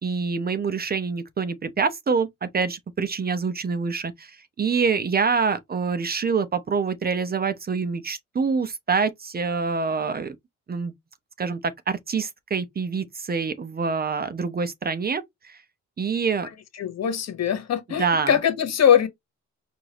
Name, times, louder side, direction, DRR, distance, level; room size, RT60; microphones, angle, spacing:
voice 1, 0.0-10.4 10.7-10.9 11.4-15.6 16.0-16.5 17.9-18.3, right 5 dB, 30° right, 0.7 m, -26 dB
voice 2, 16.8-19.1, left 9 dB, 60° left, 1.3 m, -21 dB
4.6 x 2.6 x 3.0 m
cardioid pair, 90°, 30 cm